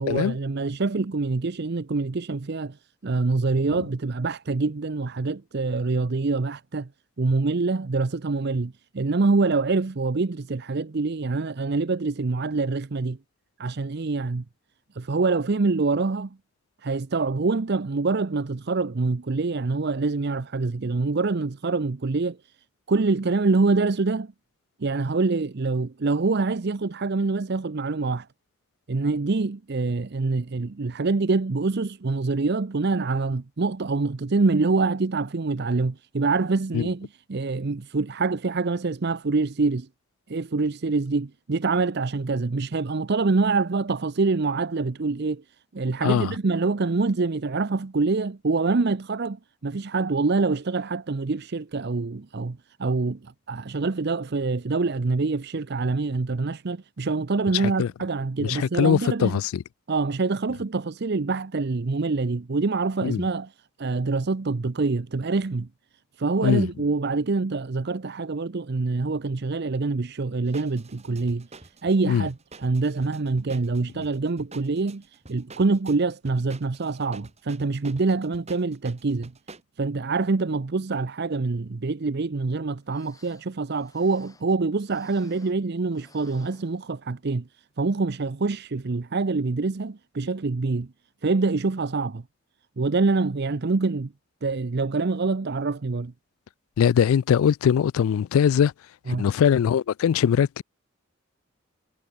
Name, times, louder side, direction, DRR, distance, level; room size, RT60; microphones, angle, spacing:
voice 1, 0.0-2.8 3.0-6.9 7.2-13.2 13.6-14.4 14.9-16.4 16.8-22.4 22.9-24.3 24.8-28.3 28.9-39.9 40.3-45.4 45.7-59.4 59.9-63.5 63.8-65.7 66.2-71.5 71.8-79.3 79.8-87.5 87.8-90.9 91.2-92.2 92.8-94.1 94.4-96.1 99.1-99.3, right 3 dB, 50° right, 0.6 m, -25 dB
voice 2, 46.0-46.3 57.5-57.9 58.4-59.6 63.0-63.2 66.4-66.7 72.1-72.3 96.8-98.7 99.1-100.6, left 8 dB, 75° left, 0.3 m, -21 dB
sound 1, 70.4-79.6, right 3 dB, 30° right, 3.6 m, -48 dB
sound 2, 82.8-85.7 85.9-87.3 87.7-87.8 88.5-88.7 89.1-89.2, left 3 dB, 15° left, 7.6 m, -58 dB
head